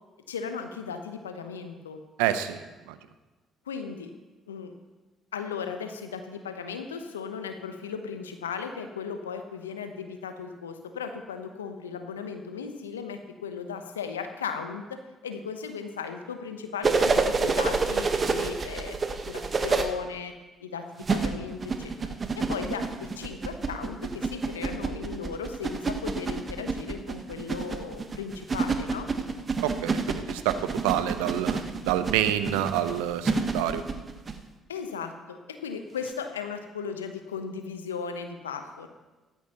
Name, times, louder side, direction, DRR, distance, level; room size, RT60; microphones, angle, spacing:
voice 1, 0.3-2.0 3.7-4.1 4.5-4.7 5.3-19.0 19.3-20.3 20.6-21.9 22.3-29.1 34.7-38.9, left 6 dB, 85° left, 7 dB, 0.9 m, -36 dB
voice 2, 2.2-3.0 29.6-33.8, right 11 dB, 75° right, 11 dB, 0.7 m, -28 dB
sound 1, 16.8-19.8 21.0-34.4 36.1-36.2, right 4 dB, 35° right, 1.3 m, -28 dB
16.0 x 13.0 x 3.0 m, 1.2 s
hypercardioid pair, 50°, 0 cm